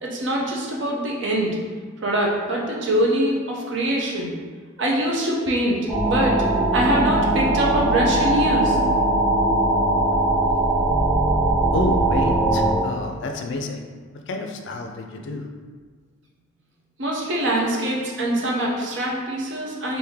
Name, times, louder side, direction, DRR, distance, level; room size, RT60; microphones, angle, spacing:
voice 1, 0.0-1.6 2.0-4.4 4.8-6.4 6.7-8.8 17.0-20.0, right 1 dB, 65° right, -2 dB, 0.6 m, -23 dB
sound 1, 5.9-12.7, right 2 dB, 5° right, 0.8 m, -20 dB
voice 2, 11.7-13.8 14.1-15.5, left 2 dB, 65° left, 4 dB, 0.4 m, -29 dB
3.2 x 2.6 x 3.5 m, 1.5 s
head